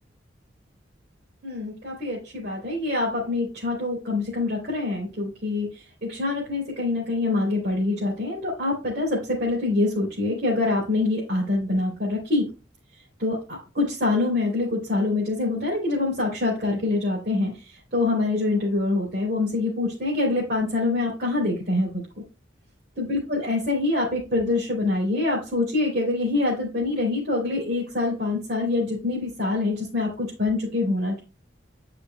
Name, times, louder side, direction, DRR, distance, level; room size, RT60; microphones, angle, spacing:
voice 1, 1.4-5.7 6.0-12.4 13.2-17.5 17.9-22.0 23.0-31.2, left 2 dB, 60° right, -6 dB, 2.7 m, -25 dB
9.8 x 5.2 x 2.2 m, 0.32 s
head